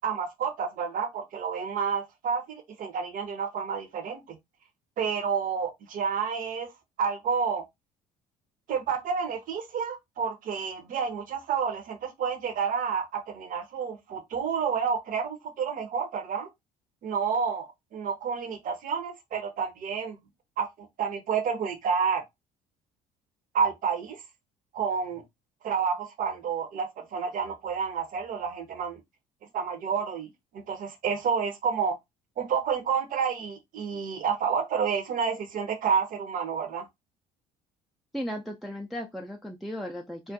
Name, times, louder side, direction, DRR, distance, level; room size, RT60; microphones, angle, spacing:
voice 1, 0.0-4.4 5.0-6.7 7.0-7.6 8.7-16.5 17.0-20.2 20.6-22.2 23.5-24.2 24.7-25.2 25.6-29.0 29.5-32.0 32.4-36.9, right 6 dB, 50° right, 0.7 m, -29 dB
voice 2, 38.1-40.3, equal, ahead, 0.4 m, -36 dB
2.3 x 2.1 x 2.6 m
hypercardioid pair, 60°, 18 cm